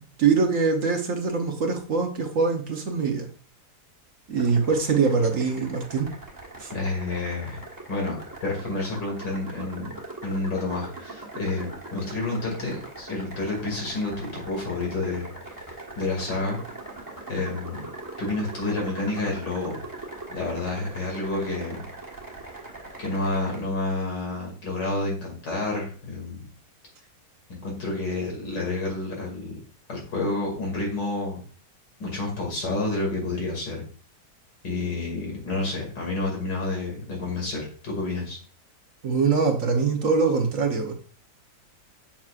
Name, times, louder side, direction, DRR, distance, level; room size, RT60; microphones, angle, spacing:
voice 1, 0.0-3.3 4.3-6.1 6.6-6.7 39.0-40.9, right 5 dB, 55° right, 1.2 m, -23 dB
sound 1, 4.3-23.6, right 2 dB, 10° right, 1.3 m, -41 dB
voice 2, 6.7-7.6 7.9-10.0 10.2-15.3 16.0-16.6 17.3-17.9 18.2-19.8 20.3-21.8 23.0-26.5 27.5-29.6 29.9-31.4 32.0-33.8 34.6-38.4, left 2 dB, 90° left, 3.1 m, -29 dB
7.2 x 6.0 x 2.5 m
omnidirectional pair, 1.8 m